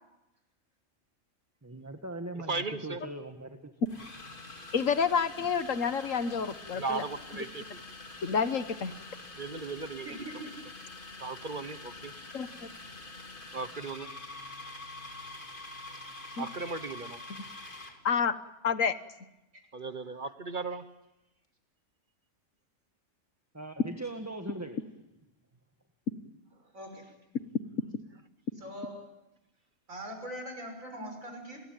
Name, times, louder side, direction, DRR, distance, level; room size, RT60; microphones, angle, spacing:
voice 1, 1.6-3.7 23.5-24.8, right 2 dB, 10° right, 6 dB, 1.5 m, -40 dB
voice 2, 2.5-3.0 6.7-7.8 9.4-10.4 11.2-11.8 13.5-14.1 16.4-17.2 19.7-20.8, right 4 dB, 40° right, 11 dB, 1.2 m, -36 dB
sound 1, 2.7-2.8 3.9-18.0, left 2 dB, 40° left, 2.8 m, -46 dB
voice 3, 4.7-7.0 8.2-8.9 12.3-12.5 16.4-16.5 18.1-18.3 18.6-18.9, left 6 dB, 75° left, 12 dB, 1.7 m, -28 dB
voice 4, 10.0-10.5 26.7-27.0 28.6-29.0 29.9-31.6, equal, 90° right, 4 dB, 6.5 m, -41 dB
30.0 x 20.5 x 9.2 m, 0.93 s
omnidirectional pair, 1.4 m